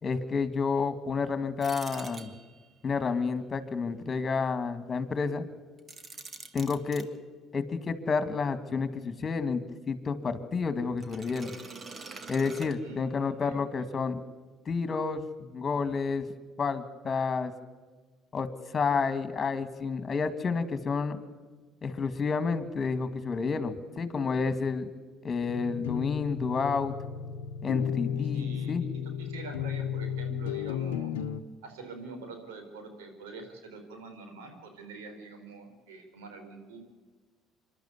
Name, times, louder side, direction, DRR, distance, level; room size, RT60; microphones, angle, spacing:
voice 1, 0.0-2.3 2.8-5.4 6.5-7.1 7.5-11.5 12.3-14.2 14.7-16.3 16.6-17.5 18.3-18.5 18.7-21.2 21.8-24.9 25.2-26.9 27.6-28.8, left 5 dB, 35° left, 11 dB, 2.2 m, -30 dB
sound 1, 1.6-2.8 5.8-7.1 11.0-13.3, right 4 dB, 40° right, 2.0 m, -45 dB
voice 2, 12.8-13.6 28.2-31.1 31.6-36.8, right 3 dB, 85° right, 5 dB, 4.0 m, -45 dB
sound 2, 25.5-31.4, left 9 dB, 85° left, 0.8 m, -34 dB
26.5 x 12.0 x 8.3 m, 1.4 s
hypercardioid pair, 65°, 0 cm